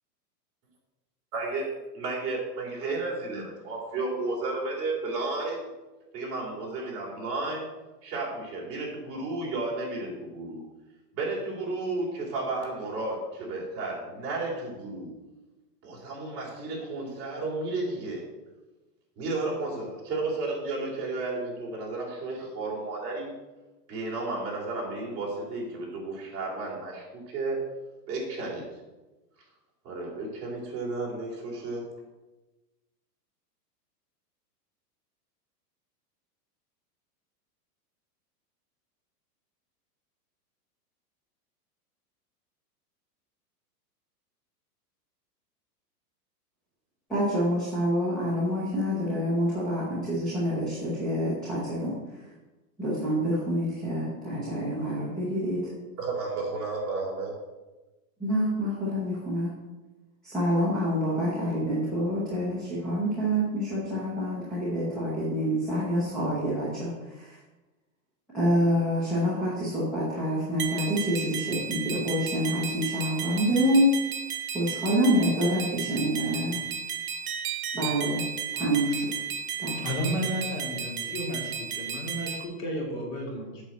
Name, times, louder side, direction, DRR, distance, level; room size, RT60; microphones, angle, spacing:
voice 1, 1.3-1.7 1.9-5.6 6.1-7.7 8.0-10.6 11.1-15.1 15.8-18.3 19.2-23.3 23.9-27.6 28.1-28.7 29.8-31.9 56.0-57.4, right 3 dB, 30° right, -4 dB, 3.6 m, -32 dB
voice 2, 47.1-51.9 52.8-55.6 58.2-59.5 60.2-67.4 68.3-73.9 74.5-76.6 77.7-78.2 78.5-79.1 79.6-79.8, equal, ahead, -10 dB, 0.4 m, -27 dB
sound 1, 70.6-82.4, right 8 dB, 65° right, 1.4 m, -34 dB
voice 3, 79.8-83.6, equal, 25° left, -1 dB, 2.6 m, -33 dB
8.1 x 5.9 x 7.5 m, 1.1 s
supercardioid pair, 160°, 48 cm